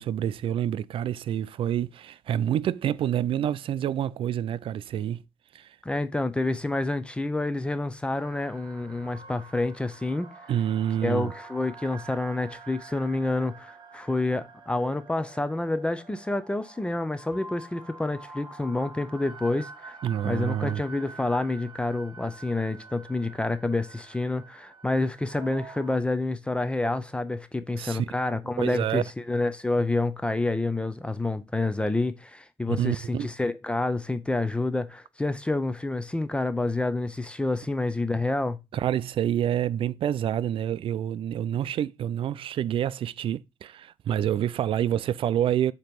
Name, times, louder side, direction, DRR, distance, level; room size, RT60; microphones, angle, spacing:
voice 1, 0.0-5.2 5.5-5.7 10.5-11.3 20.0-20.8 27.7-28.1 28.6-29.0 32.7-33.3 38.7-45.7, right 10 dB, 65° right, 0.4 m, -27 dB
voice 2, 5.8-10.3 11.0-19.9 20.2-38.6, left 2 dB, 10° left, 0.5 m, -28 dB
sound 1, 8.1-26.0, right 3 dB, 50° right, 1.7 m, -47 dB
7.6 x 2.9 x 5.2 m
cardioid pair, 120°, 10 cm